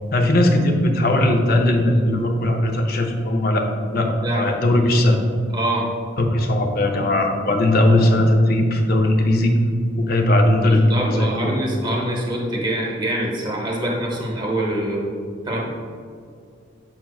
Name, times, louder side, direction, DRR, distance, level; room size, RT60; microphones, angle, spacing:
voice 1, 0.1-3.7 3.9-5.2 6.2-9.6 10.0-11.5, left 1 dB, 45° left, 3 dB, 0.6 m, -18 dB
voice 2, 4.2-4.5 5.5-5.9 10.6-15.1 15.5-15.7, right 1 dB, 20° right, -1 dB, 0.9 m, -24 dB
7.1 x 6.3 x 2.3 m, 2.2 s
head